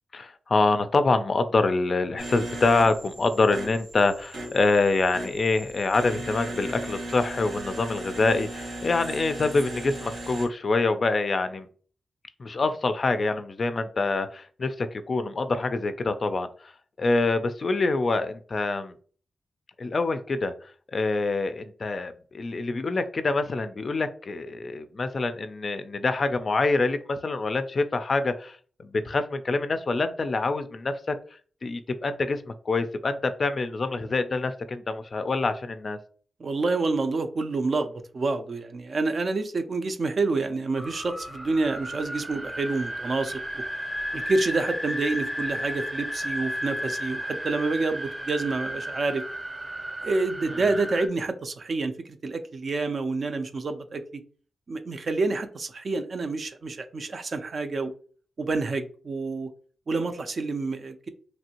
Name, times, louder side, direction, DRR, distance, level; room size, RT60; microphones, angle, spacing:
voice 1, 0.1-11.7 12.4-16.7 17.0-18.9 19.8-20.5 20.9-31.1 31.6-36.0 50.5-50.6, left 3 dB, 45° left, 10 dB, 0.3 m, -26 dB
sound 1, 2.2-10.5, right 1 dB, 85° right, 1.3 m, -37 dB
voice 2, 36.4-43.6 44.1-49.2 50.0-51.9 52.2-54.2 54.7-57.9 58.4-59.5 59.9-61.1, right 3 dB, 50° right, 8 dB, 0.4 m, -28 dB
sound 2, 40.8-51.1, equal, 10° right, 0.6 m, -34 dB
3.1 x 2.6 x 2.8 m, 0.43 s
wide cardioid pair, 115°, 0 cm